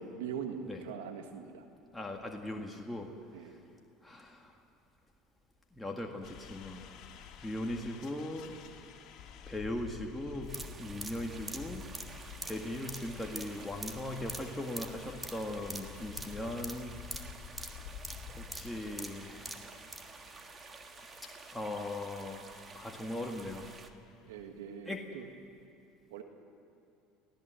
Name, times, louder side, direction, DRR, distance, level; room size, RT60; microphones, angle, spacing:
voice 1, 0.0-1.7 3.3-3.6 24.3-25.3 26.1-26.2, right 7 dB, 80° right, 5 dB, 1.7 m, -42 dB
voice 2, 1.9-3.1 3.4-3.6 4.0-4.6 5.7-6.8 7.1-8.5 9.5-10.5 10.8-11.9 12.4-17.1 18.4-19.8 21.5-23.7 24.9-25.0, left 1 dB, 10° left, 0 dB, 2.0 m, -39 dB
sound 1, 6.2-24.6, left 8 dB, 55° left, 2.6 m, -50 dB
sound 2, 10.4-20.1 20.4-20.5, right 2 dB, 15° right, 2.2 m, -45 dB
sound 3, 10.5-23.9, right 5 dB, 30° right, 1.6 m, -52 dB
24.0 x 16.0 x 7.8 m, 2.8 s
hypercardioid pair, 85°, 0 cm